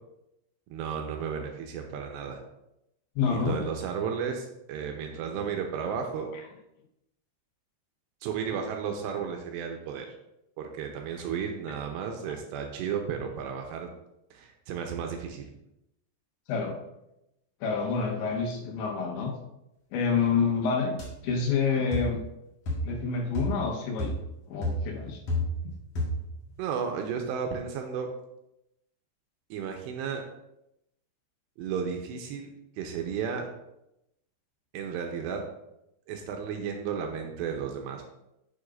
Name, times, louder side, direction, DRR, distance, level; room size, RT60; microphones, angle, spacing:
voice 1, 0.7-2.4 3.3-6.3 8.2-10.1 10.6-13.9 14.3-15.4 26.6-28.1 29.5-30.2 31.6-32.5 32.8-33.5 34.7-35.4 36.1-38.1, right 7 dB, 85° right, 3 dB, 2.6 m, -33 dB
voice 2, 3.2-3.6 6.3-6.4 16.5-16.8 17.6-19.4 19.9-21.0 21.2-22.2 22.8-24.1 24.5-25.2, left 5 dB, 80° left, 0 dB, 3.4 m, -28 dB
sound 1, 21.0-21.1 21.9-22.2 22.7-23.0 23.3-23.7 24.0-24.3 24.6-25.7 26.0-26.3, equal, 60° left, 1.8 m, -31 dB
9.6 x 7.2 x 2.5 m, 0.86 s
omnidirectional pair, 5.3 m